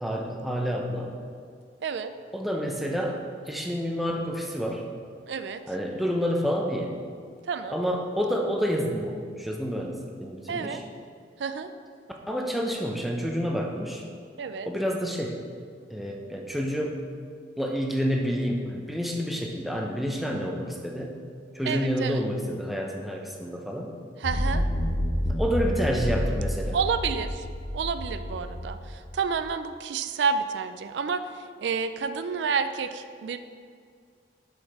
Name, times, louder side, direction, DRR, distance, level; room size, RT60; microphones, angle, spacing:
voice 1, 0.0-1.1 2.3-3.2 3.5-4.8 5.7-6.9 7.7-10.8 12.3-14.0 14.6-15.4 15.9-17.1 17.6-21.2 21.5-24.0 25.3-26.8, equal, ahead, 0 dB, 0.6 m, -29 dB
voice 2, 1.8-2.1 5.3-5.6 7.5-7.8 10.5-10.8 11.4-11.7 14.4-14.7 21.7-22.2 24.2-24.7 26.7-27.5 27.7-33.4, right 5 dB, 80° right, 10 dB, 0.4 m, -29 dB
sound 1, 24.2-29.3, equal, 45° left, 1.2 m, -29 dB
6.4 x 6.3 x 4.8 m, 2.1 s
head